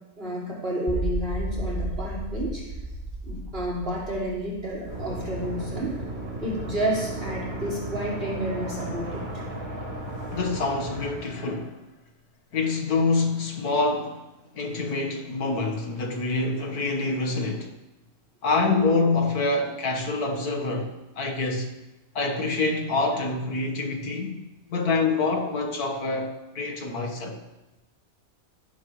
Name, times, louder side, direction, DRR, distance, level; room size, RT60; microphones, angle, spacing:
voice 1, 0.2-2.7 3.2-5.9 6.4-9.2, right 1 dB, 40° right, 5.1 m, -30 dB
sound 1, 0.9-7.0, right 1 dB, 20° left, 1.7 m, -34 dB
sound 2, 4.9-11.1, right 1 dB, 65° right, 4.1 m, -34 dB
voice 2, 10.3-11.8 12.5-14.2 14.5-17.7 18.4-21.7 22.2-24.4 24.7-27.4, left 3 dB, 80° left, 2.1 m, -26 dB
15.0 x 13.5 x 3.3 m
omnidirectional pair, 1.6 m